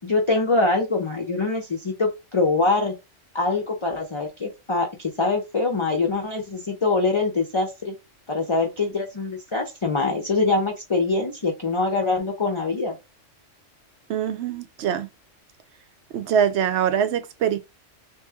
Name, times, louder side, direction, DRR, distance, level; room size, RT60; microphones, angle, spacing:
voice 1, 0.0-2.9 3.3-7.9 8.3-13.0, left 3 dB, 30° left, 0.6 m, -24 dB
voice 2, 14.1-15.1 16.1-17.6, right 8 dB, 70° right, 0.9 m, -23 dB
3.1 x 2.7 x 3.5 m
omnidirectional pair, 1.2 m